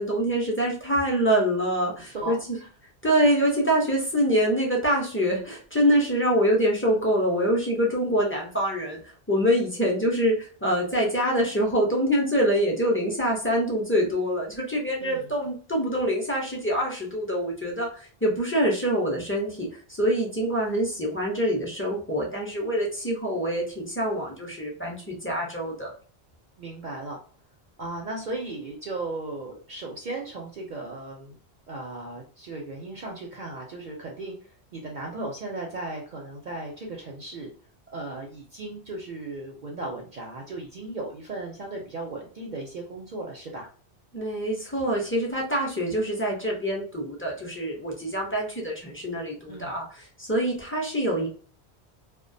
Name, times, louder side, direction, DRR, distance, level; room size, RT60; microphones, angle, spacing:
voice 1, 0.0-2.4 3.0-9.0 9.3-25.9 44.1-51.3, equal, 15° left, -3 dB, 0.4 m, -25 dB
voice 2, 2.0-2.4 15.0-15.3 26.6-27.2 27.8-31.4 31.7-34.3 34.7-37.5 37.9-43.7 49.5-49.8, right 2 dB, 55° right, 0 dB, 0.6 m, -36 dB
2.3 x 2.1 x 2.5 m, 0.41 s
omnidirectional pair, 1.1 m